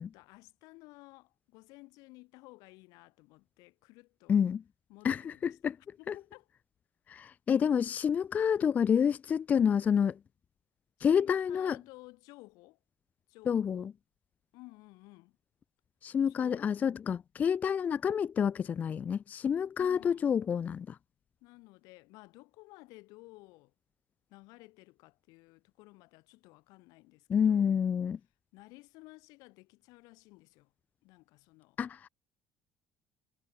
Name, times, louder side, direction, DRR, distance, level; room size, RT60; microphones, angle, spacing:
voice 1, 0.0-4.4 4.9-6.5 11.0-12.8 13.3-13.9 14.5-15.4 16.3-16.7 19.8-20.3 21.4-23.7 24.3-27.8 28.5-30.7 31.0-31.8, left 23 dB, 85° left, 4.5 m, -55 dB
voice 2, 4.3-4.6 5.0-5.8 6.1-6.2 7.1-10.2 11.0-11.8 13.5-13.9 16.0-21.0 27.3-28.2 31.8-32.1, left 7 dB, 25° left, 0.4 m, -28 dB
cardioid pair, 165°, 6 cm